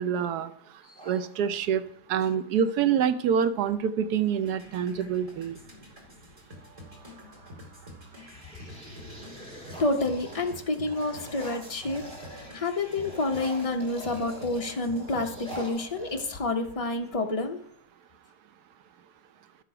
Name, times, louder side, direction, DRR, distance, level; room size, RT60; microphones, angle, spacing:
voice 1, 0.0-1.8 2.1-5.6, right 8 dB, 70° right, 11 dB, 1.1 m, -26 dB
sound 1, 0.9-1.9 3.6-3.7 4.0-4.5 5.1-6.6 7.2-7.6 8.0-12.5 12.8-16.7, right 1 dB, 5° left, 2.3 m, -45 dB
sound 2, 4.4-15.7, left 1 dB, 20° right, 2.2 m, -48 dB
voice 2, 9.8-12.0 12.3-17.6, left 2 dB, 40° left, 3 dB, 0.5 m, -29 dB
12.0 x 6.8 x 4.9 m, 0.71 s
omnidirectional pair, 1.9 m